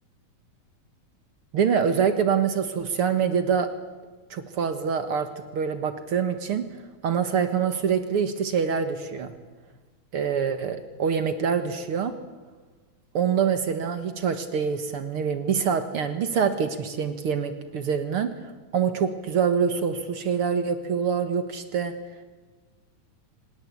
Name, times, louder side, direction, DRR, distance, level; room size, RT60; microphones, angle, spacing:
voice 1, 1.5-3.7 4.3-5.3 5.5-6.7 7.0-9.3 10.1-12.2 13.1-18.3 18.7-21.9, right 7 dB, 55° right, 10 dB, 1.7 m, -25 dB
25.0 x 20.0 x 8.4 m, 1.3 s
omnidirectional pair, 4.1 m